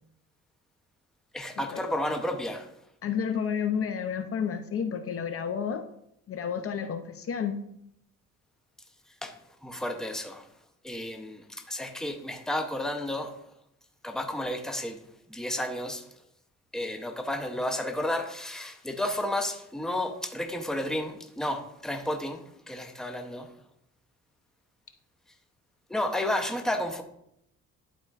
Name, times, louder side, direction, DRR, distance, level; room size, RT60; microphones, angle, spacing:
voice 1, 1.3-2.7 9.2-9.4 9.6-10.5 10.8-13.3 14.0-15.0 15.3-16.0 16.7-23.5 25.9-27.0, left 1 dB, ahead, 5 dB, 0.7 m, -32 dB
voice 2, 3.0-5.8 6.3-7.6, left 7 dB, 50° left, 8 dB, 0.6 m, -31 dB
11.0 x 4.3 x 2.4 m, 0.76 s
cardioid pair, 90°, 30 cm